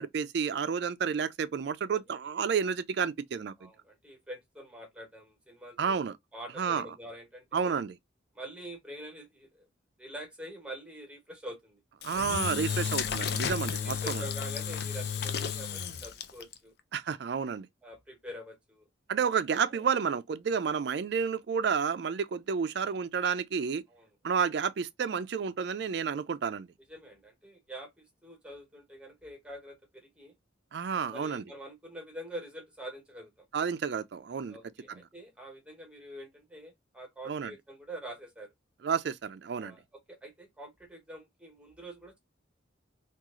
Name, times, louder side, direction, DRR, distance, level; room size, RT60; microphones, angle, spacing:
voice 1, 0.0-3.7 5.8-6.1 6.6-6.9 7.5-8.0 12.0-14.2 16.9-17.7 19.1-23.8 24.2-26.7 30.7-31.4 33.5-34.6 34.9-35.0 37.3-37.5 38.8-39.7, right 6 dB, 55° right, 0.3 m, -30 dB
voice 2, 1.8-2.2 3.6-6.0 6.3-7.8 8.3-9.7 10.0-11.8 12.1-12.2 13.8-16.7 17.8-18.8 19.7-19.9 23.9-24.4 26.9-30.3 31.1-33.5 34.5-38.5 39.5-39.8 40.1-42.2, right 1 dB, 5° right, 1.0 m, -45 dB
Engine / Drill, 12.0-16.5, left 7 dB, 55° left, 0.4 m, -33 dB
3.0 x 2.4 x 3.6 m
head